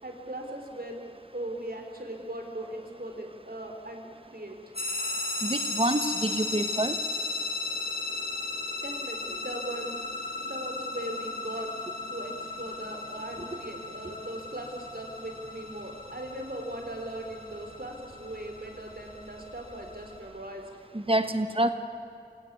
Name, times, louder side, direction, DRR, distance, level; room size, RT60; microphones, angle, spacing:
voice 1, 0.0-1.0 1.3-4.6 8.8-10.0 10.4-11.7 12.1-20.6, right 1 dB, 60° right, 3 dB, 4.1 m, -39 dB
sound 1, 4.8-20.2, left 3 dB, 70° left, 5.0 m, -36 dB
voice 2, 5.4-6.9 20.9-21.7, right 1 dB, 35° right, 9 dB, 1.3 m, -27 dB
26.0 x 17.0 x 9.6 m, 2.6 s
wide cardioid pair, 40°, 17 cm